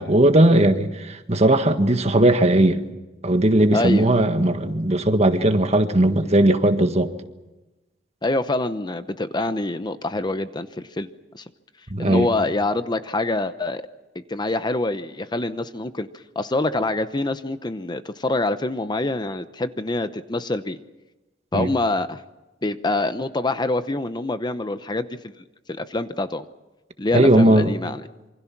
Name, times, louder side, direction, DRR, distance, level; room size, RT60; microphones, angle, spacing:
voice 1, 0.0-2.8 3.2-7.1 11.9-12.3 21.5-21.7 27.1-27.7, right 1 dB, 35° right, 1.6 m, -18 dB
voice 2, 3.7-4.1 8.2-11.1 11.3-11.4 12.0-13.8 14.3-16.1 16.3-20.8 21.5-22.2 22.6-25.2 25.8-26.5 27.0-28.0, left 2 dB, 25° left, 0.8 m, -25 dB
27.5 x 25.0 x 6.0 m
head